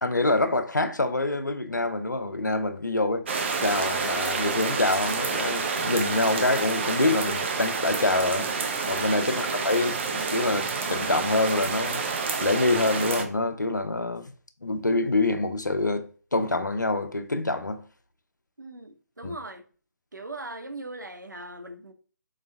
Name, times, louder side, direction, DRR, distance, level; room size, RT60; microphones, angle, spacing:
voice 1, 0.0-3.3 3.6-8.5 8.9-12.0 12.4-14.3 14.6-17.8 19.2-19.3, left 2 dB, 80° left, 0.7 m, -26 dB
sound 1, 3.3-13.2, right 4 dB, 40° right, 0.7 m, -29 dB
voice 2, 18.6-19.6 20.1-21.9, right 2 dB, 80° right, 0.8 m, -39 dB
4.0 x 3.8 x 3.4 m
figure-of-eight pair, 145°, 10 cm